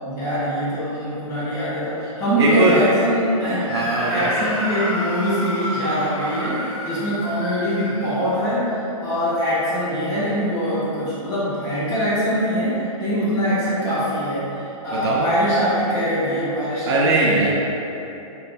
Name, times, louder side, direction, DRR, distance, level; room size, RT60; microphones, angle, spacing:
voice 1, 0.0-3.7 4.1-6.6 6.8-17.5, equal, 20° left, -10 dB, 1.2 m, -23 dB
voice 2, 2.4-2.8 3.7-4.6 14.9-15.3 16.8-17.5, right 2 dB, 50° right, -3 dB, 0.6 m, -20 dB
Screaming, 3.7-8.5, left 1 dB, 45° left, 1.1 m, -29 dB
4.1 x 4.0 x 2.3 m, 2.9 s
hypercardioid pair, 145°, 18 cm